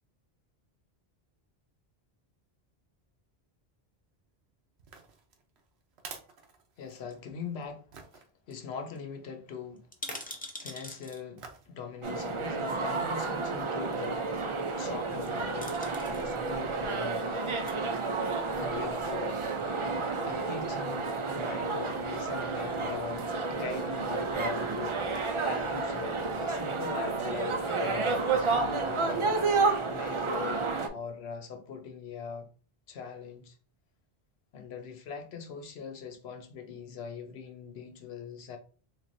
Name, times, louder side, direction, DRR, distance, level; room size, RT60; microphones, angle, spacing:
sound 1, 4.8-7.2 7.9-8.3 9.9-10.4 11.4-11.7 12.2-12.3, right 5 dB, 85° right, 1.0 m, -48 dB
voice 1, 6.8-7.9 8.1-9.9 10.5-14.5 14.8-17.2 18.5-19.5 20.2-29.3 29.9-32.5 32.9-33.6 34.5-38.6, left 6 dB, 75° left, 1.0 m, -42 dB
sound 2, 7.1-7.9 8.2-8.3 8.5-8.7 8.9-9.0 9.8-11.2 12.4-12.5 15.0-15.3 15.6-16.2 17.4-17.8 18.4-19.1 19.4-19.5, left 1 dB, 10° left, 0.5 m, -44 dB
sound 3, 12.0-30.9, right 3 dB, 45° right, 0.4 m, -31 dB
4.1 x 3.1 x 2.6 m
omnidirectional pair, 1.1 m